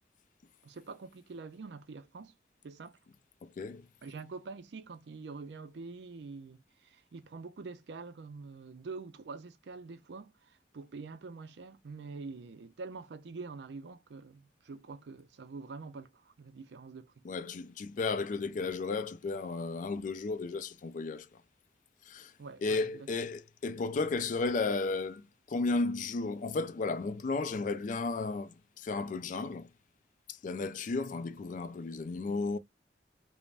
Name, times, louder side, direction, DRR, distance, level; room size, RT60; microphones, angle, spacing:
voice 1, 0.6-2.3 2.6-3.0 4.0-17.1 22.4-23.1, right 4 dB, 75° right, 0.4 m, -46 dB
voice 2, 3.4-3.8 17.2-21.3 22.1-22.3 22.6-29.7 30.3-32.6, left 3 dB, 45° left, 0.3 m, -34 dB
3.3 x 2.1 x 2.4 m
head